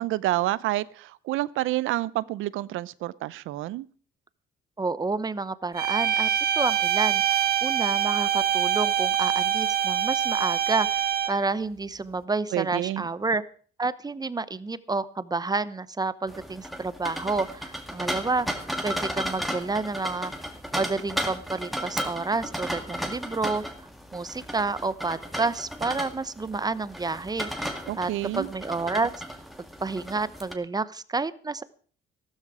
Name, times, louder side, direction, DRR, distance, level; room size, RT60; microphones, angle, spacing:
voice 1, 0.0-3.9 12.5-13.0 27.9-28.5, right 16 dB, 90° right, 20 dB, 0.6 m, -28 dB
voice 2, 4.8-6.3 6.6-13.4 13.8-18.5 18.8-20.3 20.7-23.6 24.1-28.1 28.4-29.1 29.8-31.6, right 3 dB, 20° right, 16 dB, 0.8 m, -29 dB
sound 1, 5.8-11.5, right 10 dB, 50° right, 1.5 m, -25 dB
sound 2, 16.3-30.5, equal, ahead, 2.1 m, -35 dB
14.0 x 13.0 x 4.9 m, 0.44 s
cardioid pair, 90°, 20 cm